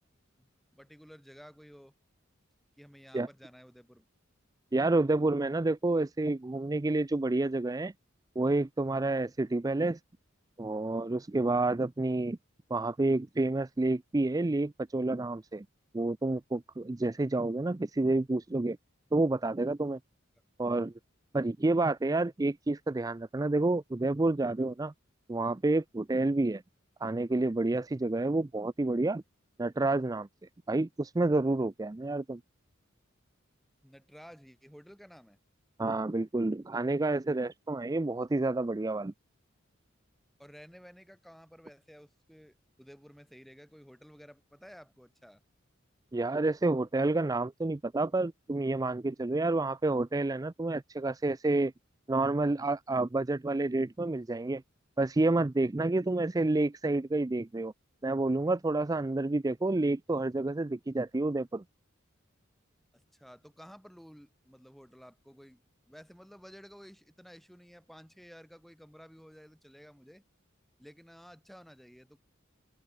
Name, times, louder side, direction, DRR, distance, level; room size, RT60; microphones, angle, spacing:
voice 1, 0.4-1.9 2.8-4.1 33.8-35.4 40.4-45.4 62.9-65.6 65.9-70.2 70.8-72.2, equal, ahead, 7.6 m, -53 dB
voice 2, 4.7-7.9 8.4-10.0 10.6-12.4 12.7-15.7 15.9-18.8 19.1-20.0 20.6-20.9 21.3-24.9 25.3-26.6 27.0-29.2 29.6-30.3 30.7-32.4 35.8-39.1 46.1-51.7 52.1-54.6 55.0-57.7 58.0-61.6, right 2 dB, 15° right, 0.4 m, -29 dB
open air
head